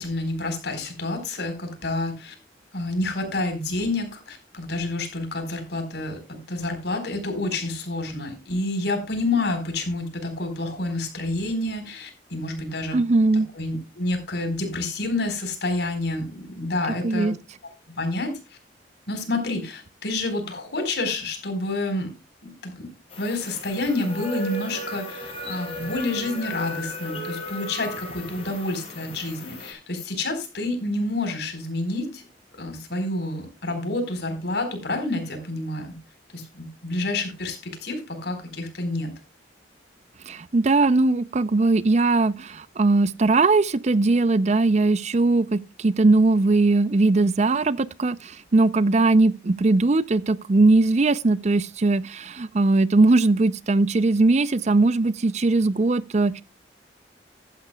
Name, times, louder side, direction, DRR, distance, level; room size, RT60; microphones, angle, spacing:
voice 1, 0.0-2.3 2.7-17.3 17.9-18.3 19.1-22.1 22.4-22.9 23.2-32.2 32.6-36.0 36.3-39.1, left 2 dB, 60° left, 4.3 m, -29 dB
voice 2, 12.9-13.5 17.0-17.3 40.3-56.4, right 3 dB, 40° right, 0.5 m, -20 dB
sound 1, 23.1-29.7, left 1 dB, 35° left, 6.4 m, -36 dB
15.0 x 11.5 x 2.3 m
head